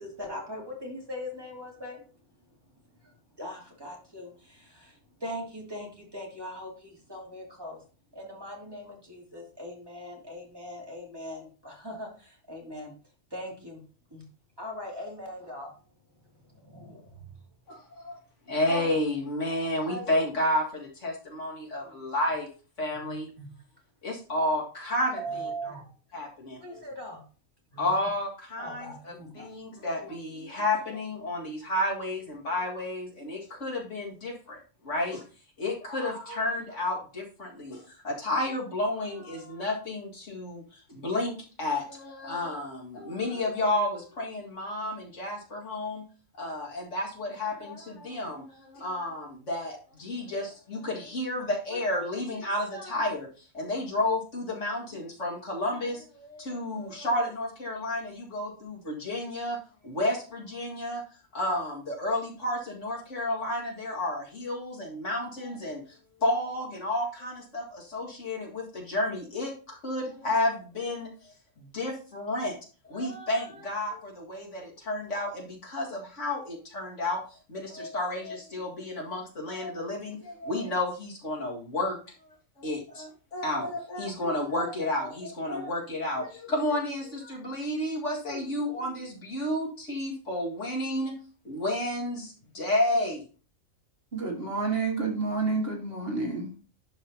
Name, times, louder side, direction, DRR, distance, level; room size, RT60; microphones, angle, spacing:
voice 1, 0.0-2.0 3.4-7.8 8.1-12.9 13.3-13.8 14.1-14.2 14.6-15.7 16.6-17.2 21.8-21.9 22.9-23.5 25.2-25.8 26.6-27.2 27.7-27.9 28.6-29.5, equal, 20° right, -2 dB, 2.7 m, -40 dB
voice 2, 17.7-18.2 18.5-22.5 22.8-23.3 24.0-25.5 26.1-26.9 27.8-35.2 35.6-46.0 46.4-59.6 59.8-61.0 61.3-65.8 66.2-72.5 72.8-82.0 82.6-91.1 91.4-93.2, left 1 dB, 65° left, -1 dB, 2.3 m, -31 dB
voice 3, 94.1-96.6, right 4 dB, 45° right, 1 dB, 1.9 m, -29 dB
11.5 x 5.0 x 2.8 m, 0.37 s
omnidirectional pair, 1.4 m